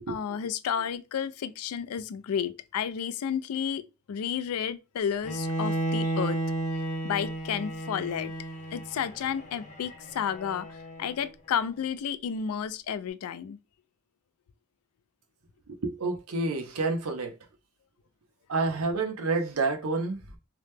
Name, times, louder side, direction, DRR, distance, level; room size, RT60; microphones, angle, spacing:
voice 1, 0.1-3.8 4.1-6.4 7.0-8.3 8.7-13.6, left 8 dB, 85° left, 0.3 m, -31 dB
Bowed string instrument, 5.2-11.3, right 2 dB, 35° left, 0.6 m, -33 dB
voice 2, 15.8-17.4 18.5-20.4, right 3 dB, 75° right, 0.6 m, -29 dB
2.8 x 2.1 x 3.3 m
head